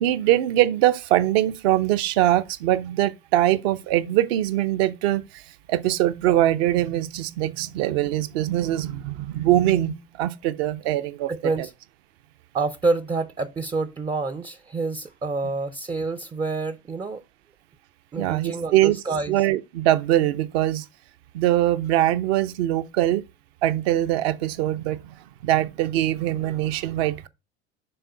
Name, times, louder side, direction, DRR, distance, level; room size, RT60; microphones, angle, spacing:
voice 1, 0.0-5.4 5.7-11.3 11.6-11.7 18.2-19.0 19.3-20.8 21.3-23.2 23.6-25.2 25.4-27.3, right 13 dB, 70° right, 0.7 m, -22 dB
voice 2, 11.3-11.7 12.5-17.2 18.1-19.5, right 3 dB, 15° right, 0.4 m, -27 dB
6.8 x 3.7 x 5.5 m
hypercardioid pair, 80°, 33 cm